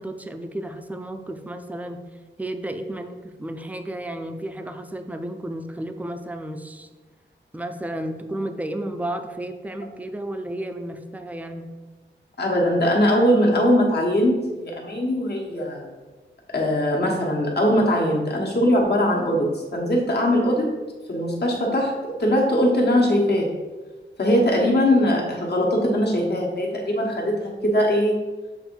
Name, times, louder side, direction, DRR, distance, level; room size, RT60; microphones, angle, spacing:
voice 1, 0.0-2.0 2.4-6.9 7.5-11.7, right 1 dB, 10° right, 7 dB, 0.4 m, -32 dB
voice 2, 12.4-15.9 16.5-20.7 21.1-23.5 24.2-28.2, equal, 60° left, -1 dB, 1.3 m, -21 dB
7.2 x 2.6 x 5.3 m, 1.3 s
wide cardioid pair, 125°, 19 cm